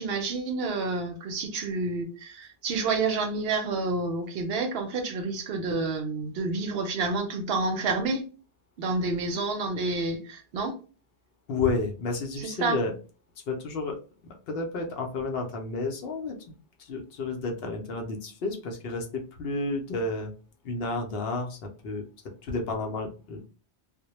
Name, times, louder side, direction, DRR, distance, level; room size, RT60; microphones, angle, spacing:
voice 1, 0.0-8.2 8.8-10.7 12.4-12.8, right 3 dB, 65° right, 5 dB, 0.7 m, -29 dB
voice 2, 11.5-13.0 13.5-14.0 14.2-16.5 16.8-20.3 20.6-22.0 22.4-23.4, left 3 dB, 65° left, 3 dB, 0.7 m, -31 dB
2.1 x 2.0 x 2.8 m, 0.36 s
omnidirectional pair, 1.2 m